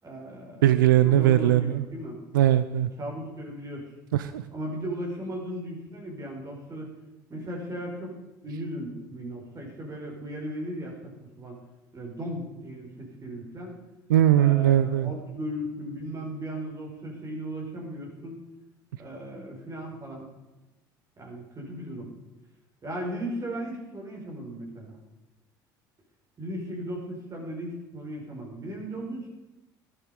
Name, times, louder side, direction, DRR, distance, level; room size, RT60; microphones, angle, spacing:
voice 1, 0.0-0.7 1.0-2.2 3.0-3.9 4.5-6.9 7.3-8.2 8.4-11.1 11.4-11.6 11.9-13.8 14.3-18.4 19.0-20.3 21.2-22.1 22.8-25.0 26.4-29.3, right 1 dB, 35° right, -1 dB, 5.2 m, -36 dB
voice 2, 0.6-1.8 2.3-2.9 4.1-4.4 14.1-15.1, right 12 dB, 85° right, 13 dB, 0.5 m, -20 dB
13.5 x 11.5 x 5.3 m, 1.0 s
hypercardioid pair, 70°, 11 cm